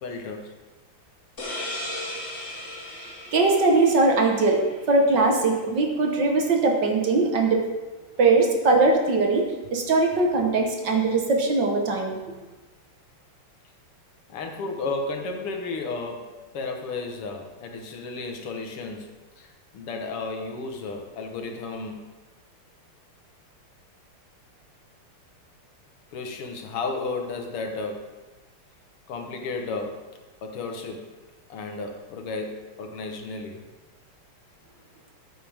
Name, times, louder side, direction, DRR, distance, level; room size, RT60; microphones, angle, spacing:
voice 1, 0.0-0.6 14.3-22.0 26.1-28.2 29.1-31.1 31.5-33.7, left 3 dB, 85° left, 3 dB, 2.2 m, -33 dB
sound 1, 1.4-4.8, left 1 dB, 35° left, 1.8 m, -36 dB
voice 2, 3.0-4.6 4.9-7.7 8.2-12.2, right 3 dB, 55° right, 2 dB, 1.9 m, -21 dB
14.0 x 8.6 x 3.6 m, 1.2 s
omnidirectional pair, 2.4 m